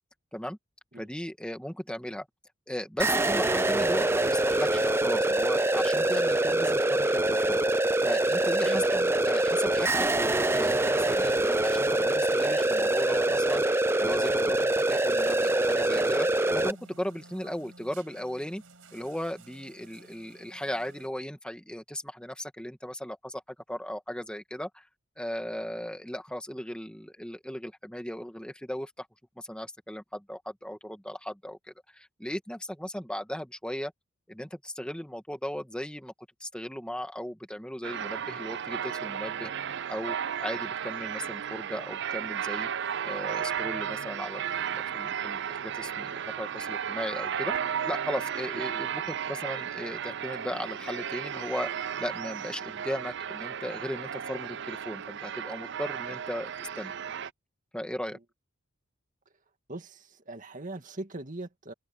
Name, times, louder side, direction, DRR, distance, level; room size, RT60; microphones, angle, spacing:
voice 1, 1.0-2.3 2.7-13.6 14.0-16.3 16.5-18.6 18.9-23.4 23.7-24.9 25.2-29.1 29.4-31.6 31.9-33.9 34.3-36.1 36.4-39.5 39.9-42.7 43.0-47.5 47.8-56.5 56.8-56.9 57.7-58.2, equal, 5° left, 2.0 m, -36 dB
sound 1, 3.0-16.7, right 2 dB, 10° right, 0.6 m, -25 dB
sound 2, 15.2-21.1, right 3 dB, 75° right, 5.3 m, -54 dB
sound 3, 37.8-57.3, right 8 dB, 60° right, 0.5 m, -34 dB
voice 2, 59.7-61.7, right 2 dB, 40° right, 2.0 m, -40 dB
head